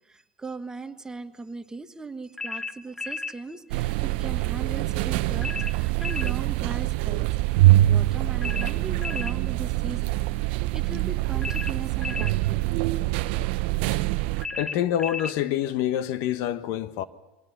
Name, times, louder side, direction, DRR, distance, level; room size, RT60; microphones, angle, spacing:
voice 1, 0.0-12.6, right 3 dB, 10° right, 1.4 m, -39 dB
sound 1, 2.4-3.4 5.4-6.4 8.4-9.4 11.4-12.4 14.4-15.4, left 4 dB, 10° left, 1.1 m, -33 dB
sound 2, 3.7-14.5, right 16 dB, 60° right, 0.8 m, -24 dB
voice 2, 14.5-17.0, left 11 dB, 55° left, 1.2 m, -27 dB
23.5 x 17.0 x 10.0 m
hypercardioid pair, 95°, 6 cm